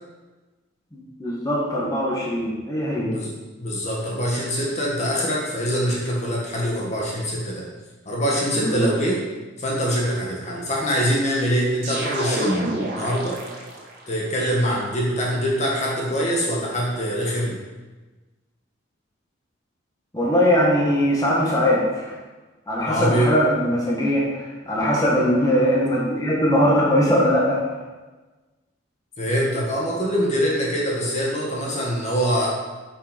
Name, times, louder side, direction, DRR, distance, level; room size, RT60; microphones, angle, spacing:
voice 1, 0.9-3.1 8.6-8.9 20.1-22.2 22.7-27.6, equal, 20° left, -4 dB, 1.8 m, -21 dB
voice 2, 3.6-7.6 8.1-9.2 9.6-13.4 14.1-17.6 22.8-23.3 29.2-32.5, equal, 35° left, -3 dB, 1.8 m, -24 dB
sound 1, 11.8-14.1, right 1 dB, 55° right, 2.1 m, -28 dB
9.6 x 6.3 x 5.3 m, 1.2 s
head